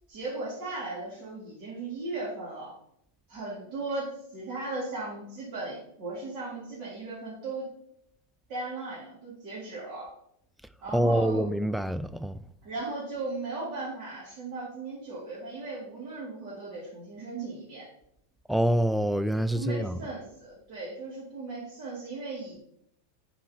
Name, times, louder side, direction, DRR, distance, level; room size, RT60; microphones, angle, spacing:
voice 1, 0.1-2.7 3.3-7.7 8.5-10.1 10.8-11.5 12.6-17.9 19.5-22.6, right 3 dB, 50° right, 2.5 m, -37 dB
voice 2, 10.9-12.4 18.5-19.9, right 1 dB, ahead, 0.3 m, -26 dB
9.6 x 4.3 x 2.9 m
hypercardioid pair, 95°, 0 cm